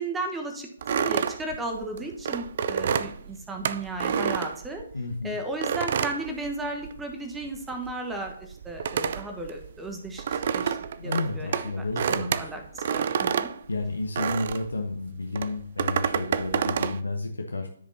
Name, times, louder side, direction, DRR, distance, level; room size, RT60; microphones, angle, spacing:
voice 1, 0.0-4.8 5.2-10.8 11.0-13.5, right 2 dB, 5° right, 3 dB, 1.2 m, -35 dB
sound 1, 0.8-5.1 5.6-7.1 7.4-14.7 15.3-17.0, right 7 dB, 40° right, 0.4 m, -29 dB
voice 2, 4.9-5.4 11.0-12.5 13.7-17.7, left 2 dB, 75° left, 3 dB, 0.9 m, -31 dB
13.0 x 5.1 x 2.8 m, 0.67 s
figure-of-eight pair, 135°, 0 cm